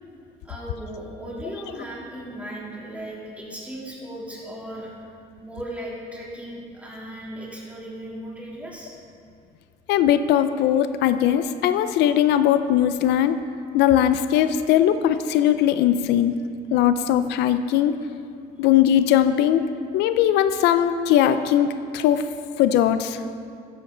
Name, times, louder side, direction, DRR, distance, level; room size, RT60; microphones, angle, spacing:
voice 1, 0.4-4.9 5.4-8.9, right 1 dB, 10° right, -5 dB, 3.1 m, -36 dB
voice 2, 9.9-13.4 13.7-16.3 16.7-17.9 18.6-19.6 19.9-22.2 22.6-23.2, left 10 dB, 85° left, 11 dB, 0.5 m, -19 dB
13.0 x 10.5 x 3.9 m, 2.4 s
cardioid pair, 110°, 17 cm